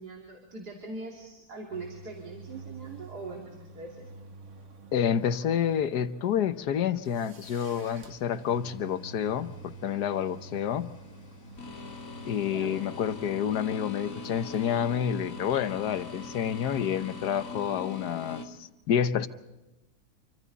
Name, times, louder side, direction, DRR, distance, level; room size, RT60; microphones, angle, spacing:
voice 1, 0.0-4.0 12.4-13.0, right 3 dB, 80° right, 0 dB, 3.4 m, -41 dB
sound 1, 1.7-18.3, right 3 dB, 50° right, 1.7 m, -49 dB
voice 2, 4.9-10.9 12.2-19.3, left 8 dB, 85° left, 12 dB, 1.5 m, -29 dB
sound 2, 7.4-18.5, left 4 dB, 60° left, 2.7 m, -43 dB
27.5 x 25.0 x 4.1 m, 1.0 s
omnidirectional pair, 1.7 m